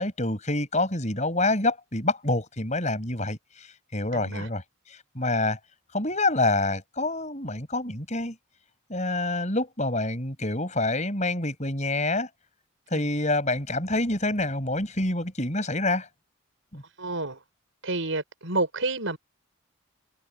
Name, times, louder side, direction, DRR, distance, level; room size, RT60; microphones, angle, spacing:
voice 1, 0.0-3.4 3.9-4.6 4.9-5.6 5.9-8.4 8.9-12.3 12.9-16.1 16.7-16.8, left 2 dB, 35° left, 7.4 m, -27 dB
voice 2, 4.1-4.5 12.9-13.1 17.0-17.4 17.8-19.2, right 2 dB, 65° right, 5.6 m, -29 dB
head